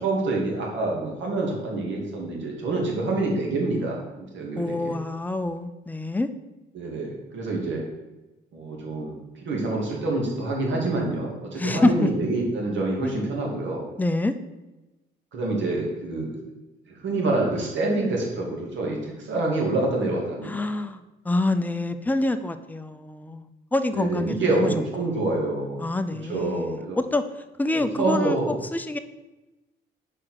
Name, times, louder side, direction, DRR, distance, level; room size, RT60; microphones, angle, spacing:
voice 1, 0.0-4.9 6.7-7.8 8.5-9.2 9.4-13.8 15.3-16.3 16.9-19.0 19.2-20.5 23.9-25.8 26.3-27.0 27.8-28.5, right 2 dB, 70° right, -1 dB, 2.0 m, -26 dB
voice 2, 4.6-6.3 11.6-12.1 13.0-13.3 14.0-14.3 20.4-24.7 25.0-25.1 25.8-27.2 27.6-29.0, left 2 dB, 10° left, 9 dB, 0.5 m, -26 dB
5.0 x 4.6 x 6.0 m, 1.1 s
cardioid pair, 90°, 20 cm